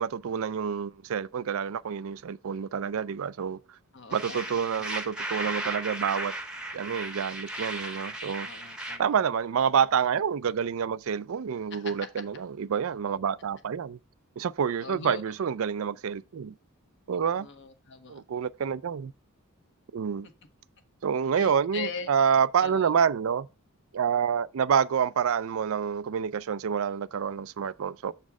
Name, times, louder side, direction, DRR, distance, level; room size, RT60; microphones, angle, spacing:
voice 1, 0.0-3.6 4.1-6.3 6.7-8.5 9.0-14.0 14.4-16.5 17.1-17.5 18.1-19.1 19.9-20.3 21.0-23.5 23.9-28.1, right 7 dB, 65° right, 0.4 m, -28 dB
voice 2, 3.9-4.8 8.4-9.0 11.7-11.9 14.8-15.2 17.4-18.2 21.3-22.1 22.6-22.9, left 4 dB, 55° left, 1.1 m, -40 dB
sound 1, 4.1-9.0, right 1 dB, 5° right, 0.9 m, -36 dB
7.1 x 4.2 x 4.7 m
head